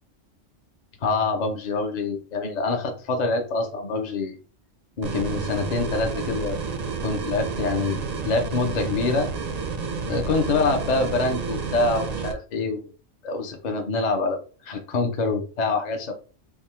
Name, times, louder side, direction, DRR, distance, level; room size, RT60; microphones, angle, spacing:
voice 1, 1.0-4.4 5.0-6.6 7.0-8.0 8.2-9.3 10.1-12.9 13.2-14.4 14.6-16.1, left 3 dB, 45° left, 5 dB, 0.7 m, -25 dB
sound 1, 5.0-12.3, right 4 dB, 50° right, 0.5 m, -30 dB
3.6 x 2.3 x 4.3 m, 0.37 s
omnidirectional pair, 1.3 m